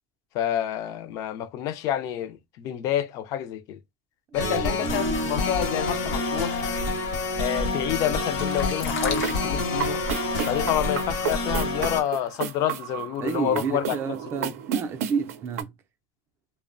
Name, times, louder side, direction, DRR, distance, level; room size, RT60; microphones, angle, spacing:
voice 1, 0.3-3.8 4.3-6.6 7.4-10.0 10.5-14.0 14.4-14.5, left 11 dB, 45° left, 0.4 m, -28 dB
sound 1, 4.3-12.0, left 2 dB, 60° left, 0.8 m, -27 dB
voice 2, 4.4-5.0 13.2-15.7, right 6 dB, 30° right, 0.4 m, -30 dB
sound 2, 4.7-12.3, left 6 dB, 90° left, 0.7 m, -38 dB
sound 3, 9.1-15.6, right 10 dB, 90° right, 0.5 m, -34 dB
2.6 x 2.1 x 2.5 m
supercardioid pair, 145°, 8 cm